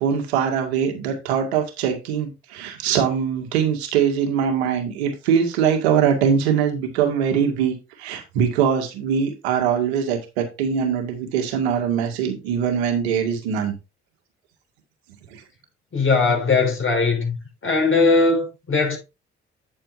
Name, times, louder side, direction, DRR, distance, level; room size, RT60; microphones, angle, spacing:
voice 1, 0.0-13.7 15.3-15.4, right 7 dB, 80° right, 2.1 m, -22 dB
voice 2, 15.9-17.4 17.6-19.0, left 3 dB, 40° left, 6.0 m, -19 dB
8.9 x 8.7 x 2.7 m
hypercardioid pair, 45°, 32 cm